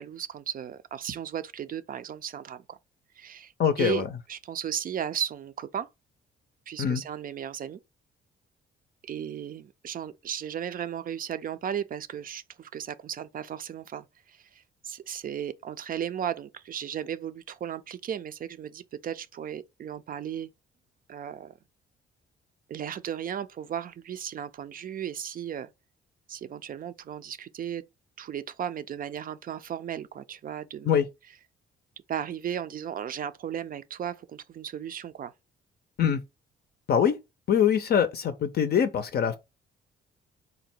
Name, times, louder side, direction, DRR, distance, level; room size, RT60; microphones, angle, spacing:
voice 1, 0.0-2.8 3.2-3.5 3.8-5.9 6.7-7.8 9.0-20.5 21.1-21.5 22.7-25.7 26.3-27.8 28.2-30.9 32.1-35.3, right 9 dB, 45° right, 0.4 m, -35 dB
voice 2, 3.6-4.1 6.8-7.0 30.8-31.1 36.0-36.2 36.9-37.2 37.5-39.4, left 8 dB, 50° left, 0.5 m, -23 dB
3.8 x 2.1 x 4.3 m
cardioid pair, 90°, 20 cm